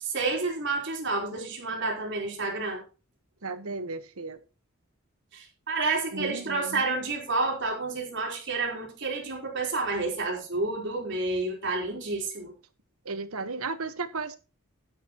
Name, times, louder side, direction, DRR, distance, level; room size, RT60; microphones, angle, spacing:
voice 1, 0.0-2.8 5.3-12.5, right 3 dB, 55° right, 4.2 m, -30 dB
voice 2, 3.4-4.4 6.1-7.0 13.0-14.4, right 3 dB, 85° right, 1.3 m, -34 dB
12.0 x 10.5 x 3.0 m
head